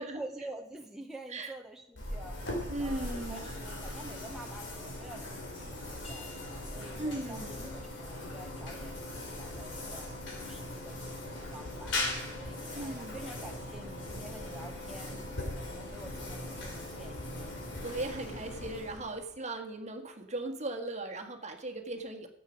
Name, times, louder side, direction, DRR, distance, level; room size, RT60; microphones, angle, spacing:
voice 1, 0.0-2.4 2.8-6.3 6.7-7.4 7.7-10.1 10.4-12.0 12.4-17.5, right 1 dB, ahead, 1 dB, 0.9 m, -48 dB
sound 1, 2.0-19.3, left 1 dB, 65° left, 4.2 m, -40 dB
voice 2, 2.7-3.6 7.0-7.7 12.7-13.2 17.8-22.3, right 2 dB, 35° right, 4 dB, 1.6 m, -38 dB
sound 2, 6.0-11.4, left 3 dB, 35° left, 4.0 m, -57 dB
13.0 x 8.4 x 6.4 m, 0.80 s
head